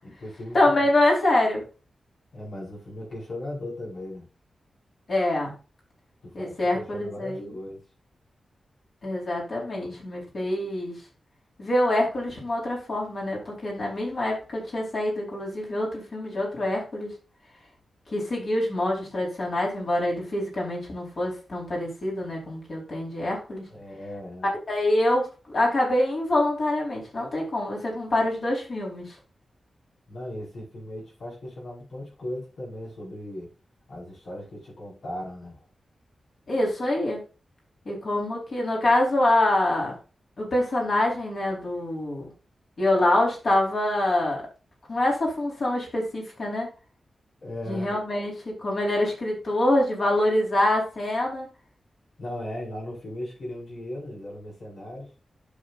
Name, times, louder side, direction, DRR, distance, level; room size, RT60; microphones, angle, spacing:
voice 1, 0.0-0.9 2.3-4.3 6.2-7.8 23.7-24.5 30.1-33.5 33.9-35.6 47.4-48.0 52.2-55.1, left 1 dB, 80° left, 5.5 m, -37 dB
voice 2, 0.5-1.6 5.1-5.5 6.3-7.5 9.0-11.0 11.6-17.1 18.1-23.6 24.7-29.1 36.5-37.2 37.9-39.9 40.4-42.3 42.8-44.4 44.9-46.7 47.7-51.5, left 1 dB, 50° left, 4.4 m, -25 dB
11.5 x 6.7 x 2.6 m
wide cardioid pair, 155°, 0 cm